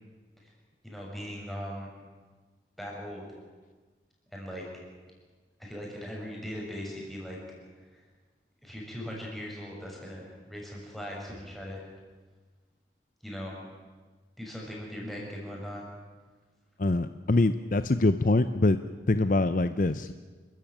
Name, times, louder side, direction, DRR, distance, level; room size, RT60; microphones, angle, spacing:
voice 1, 0.8-1.9 2.8-3.3 4.3-4.6 5.6-7.4 7.9-8.0 8.6-11.8 13.2-13.6 14.4-15.9, equal, ahead, -3 dB, 6.3 m, -39 dB
voice 2, 16.8-18.8 19.1-20.1, left 2 dB, 45° left, 12 dB, 0.6 m, -24 dB
28.5 x 14.5 x 9.2 m, 1.4 s
head